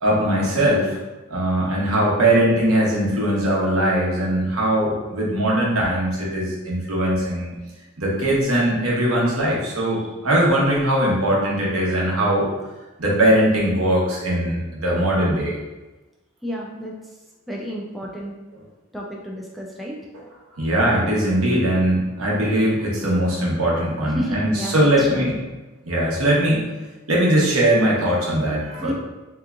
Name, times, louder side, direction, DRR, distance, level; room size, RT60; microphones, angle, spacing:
voice 1, 0.0-1.0 1.3-7.5 8.0-12.5 13.0-15.5 20.5-25.4 25.9-26.7 27.1-28.9, right 1 dB, 85° right, -4 dB, 1.0 m, -20 dB
voice 2, 1.6-2.0 9.9-10.1 16.4-16.9 17.5-18.3 18.9-20.0 24.1-25.3 28.8-28.9, equal, ahead, -3 dB, 0.3 m, -31 dB
3.4 x 2.9 x 2.4 m, 1.1 s
head